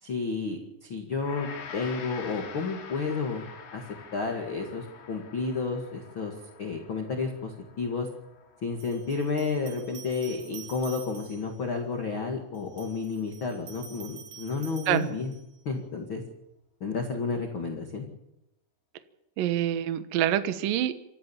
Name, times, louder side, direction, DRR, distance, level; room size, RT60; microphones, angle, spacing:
voice 1, 0.0-3.4 3.7-3.8 4.1-6.3 6.6-7.5 7.8-8.1 8.6-15.3 15.6-16.2 16.8-18.0, left 4 dB, 50° left, 2 dB, 1.5 m, -31 dB
Gong, 1.1-10.5, left 6 dB, 85° left, 5.5 m, -46 dB
sound 1, 8.8-11.6 12.5-15.6, right 7 dB, 45° right, 2.9 m, -47 dB
voice 2, 19.4-21.0, right 11 dB, 80° right, 10 dB, 2.0 m, -26 dB
26.5 x 14.5 x 7.3 m, 0.87 s
omnidirectional pair, 5.7 m